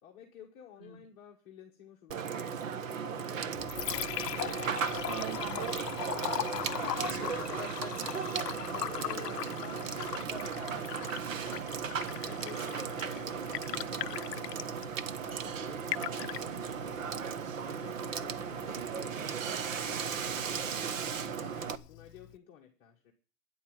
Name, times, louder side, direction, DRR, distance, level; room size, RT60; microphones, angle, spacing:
voice 1, 0.0-4.7 12.1-15.0 15.2-17.2 17.6-23.1, left 9 dB, 15° left, -3 dB, 1.1 m, -54 dB
Water / Water tap faucet / Sink (filling or washing), 2.1-21.8, right 7 dB, 55° right, 1.0 m, -36 dB
Liquid, 3.4-22.4, left 14 dB, 80° left, 0.6 m, -41 dB
voice 2, 6.0-6.5 6.8-11.2, left 2 dB, 10° right, 4 dB, 2.3 m, -48 dB
9.5 x 8.3 x 9.0 m, 0.41 s
hypercardioid pair, 175°, 48 cm